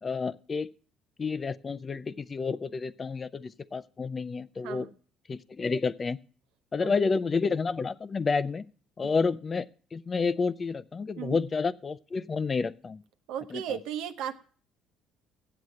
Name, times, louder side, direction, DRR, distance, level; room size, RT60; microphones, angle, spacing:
voice 1, 0.0-0.7 1.2-4.9 5.3-6.2 6.7-8.7 9.0-13.0 13.5-13.8, left 4 dB, 30° left, 16 dB, 0.5 m, -30 dB
voice 2, 13.3-14.4, right 9 dB, 80° right, 9 dB, 0.9 m, -35 dB
7.9 x 7.7 x 8.4 m, 0.43 s
supercardioid pair, 90°, 0 cm